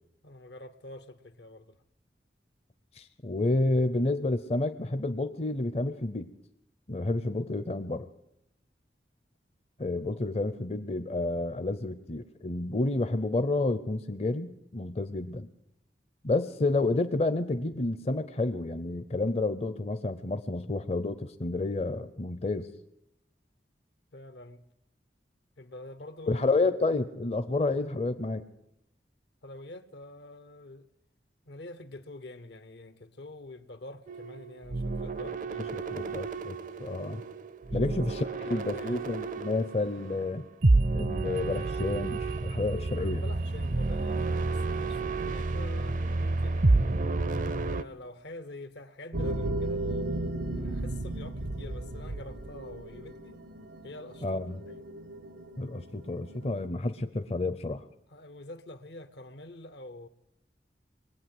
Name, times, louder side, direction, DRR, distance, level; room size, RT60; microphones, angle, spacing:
voice 1, 0.2-1.8 10.1-10.4 24.1-24.6 25.6-26.4 29.4-30.9 31.5-36.1 37.7-39.1 42.9-47.2 47.6-53.4 53.8-54.8 58.1-60.1, left 1 dB, 75° left, 0.9 m, -46 dB
voice 2, 3.0-6.3 6.9-8.1 9.8-15.5 16.2-22.7 26.3-28.4 35.7-37.2 37.7-40.4 40.9-43.2 54.2-54.6 55.6-57.8, left 2 dB, 35° left, 0.6 m, -30 dB
sound 1, 34.1-47.8, right 3 dB, 45° right, 0.5 m, -30 dB
sound 2, 49.1-56.7, right 1 dB, 85° right, 1.0 m, -35 dB
21.0 x 8.6 x 7.7 m
head